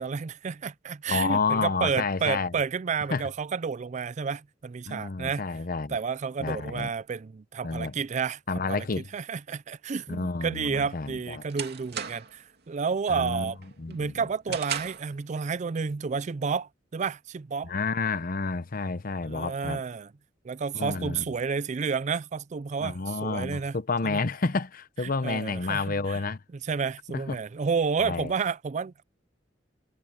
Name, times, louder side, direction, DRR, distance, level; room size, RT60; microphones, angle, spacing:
voice 1, 0.0-5.4 5.9-8.4 8.7-8.9 9.1-13.6 13.9-17.7 19.3-20.1 20.4-23.7 24.0-24.2 25.0-26.2 26.6-29.0, right 5 dB, 40° right, 0.4 m, -30 dB
voice 2, 1.1-2.6 3.1-3.3 4.9-6.0 6.4-6.9 7.6-7.9 8.5-9.1 10.1-11.4 13.1-13.5 13.8-14.1 17.6-19.8 20.7-21.3 22.8-26.4 27.1-27.4 28.0-28.3, left 4 dB, 50° left, 0.8 m, -30 dB
sound 1, 10.7-12.5 12.9-13.2 13.6-15.2, right 8 dB, 60° right, 2.8 m, -36 dB
head